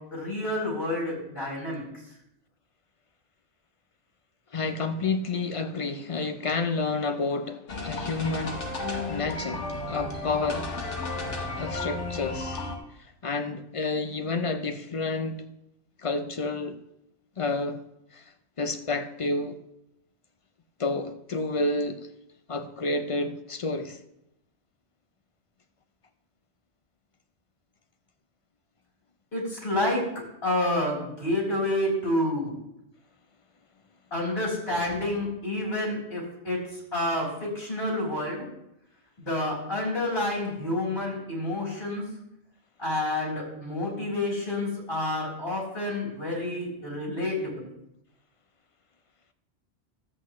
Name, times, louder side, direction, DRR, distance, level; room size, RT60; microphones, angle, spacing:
voice 1, 0.1-1.8 29.3-32.6 34.1-36.6 36.9-38.4 39.2-42.0 42.8-47.7, left 1 dB, 60° left, 4.0 m, -29 dB
voice 2, 4.5-10.7 11.6-12.7 13.2-15.4 16.0-16.8 17.4-17.8 18.1-18.2 18.6-19.6 20.8-22.1 22.5-24.0, left 3 dB, 40° left, 0.5 m, -30 dB
sound 1, 7.7-12.8, left 2 dB, 80° left, 1.5 m, -33 dB
13.0 x 7.9 x 3.1 m
omnidirectional pair, 1.2 m